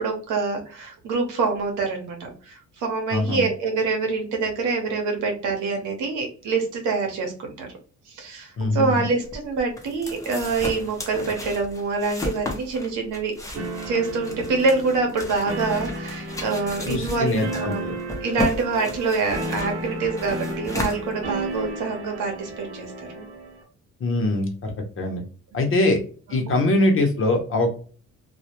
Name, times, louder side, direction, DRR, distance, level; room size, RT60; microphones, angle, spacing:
voice 1, 0.0-7.7 8.1-13.3 13.8-17.9 18.2-23.3 25.5-25.7 26.3-26.4, right 4 dB, 85° right, 2 dB, 0.9 m, -26 dB
voice 2, 3.1-3.5 8.6-9.1 16.9-17.7 24.0-25.2 25.5-26.0 26.3-27.7, left 2 dB, 45° left, 3 dB, 0.8 m, -22 dB
sound 1, 9.2-21.7, left 1 dB, 10° left, 0.7 m, -34 dB
sound 2, 13.5-23.6, right 1 dB, 55° right, 0.9 m, -34 dB
2.2 x 2.1 x 2.8 m, 0.41 s
cardioid pair, 90°, 30 cm